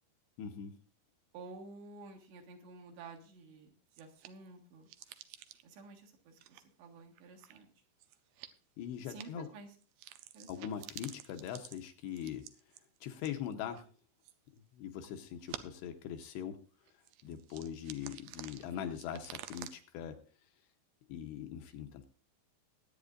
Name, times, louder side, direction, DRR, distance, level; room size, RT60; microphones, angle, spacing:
voice 1, 0.4-0.8 8.8-9.5 10.5-12.5 13.0-13.9 14.7-16.6 17.2-20.2 21.1-22.1, left 9 dB, 75° left, 5 dB, 2.8 m, -41 dB
voice 2, 1.3-4.9 5.6-7.7 9.1-9.7 10.3-10.7, right 3 dB, 70° right, 1 dB, 3.8 m, -52 dB
sound 1, 3.9-4.5 4.9-5.8 6.3-6.6 7.1-7.6 8.0-8.6 9.1-9.3 9.8-13.8 14.2-14.6 15.0-15.1 15.5-15.8 16.2-16.3 16.9-19.7, right 12 dB, 85° right, 2.2 m, -50 dB
21.0 x 9.1 x 2.5 m, 0.40 s
omnidirectional pair, 5.3 m